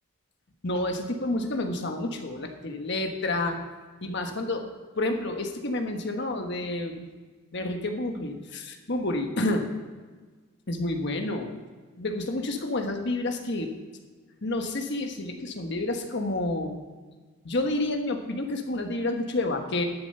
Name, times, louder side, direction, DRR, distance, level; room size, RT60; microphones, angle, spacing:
voice 1, 0.6-3.6 4.0-4.7 4.9-7.1 7.5-9.6 10.7-11.6 12.0-13.7 14.4-16.8 17.4-19.9, left 2 dB, 55° left, 5 dB, 1.3 m, -29 dB
11.5 x 7.3 x 5.5 m, 1.4 s
head